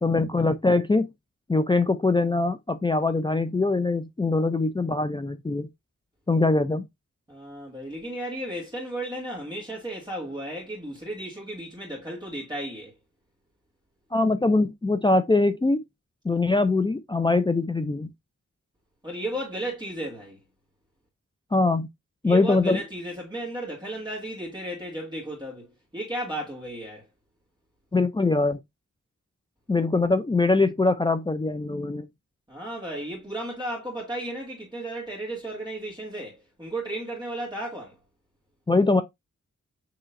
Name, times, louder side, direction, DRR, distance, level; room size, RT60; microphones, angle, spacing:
voice 1, 0.0-1.1 1.5-5.7 6.3-6.9 14.1-15.8 16.2-18.1 21.5-21.9 22.2-22.8 27.9-28.6 29.7-32.1 38.7-39.0, left 3 dB, 15° left, 0.4 m, -22 dB
voice 2, 7.3-12.9 19.0-20.4 22.2-27.1 32.5-38.0, right 1 dB, 15° right, 1.9 m, -34 dB
6.5 x 3.0 x 2.5 m
cardioid pair, 80°, 30 cm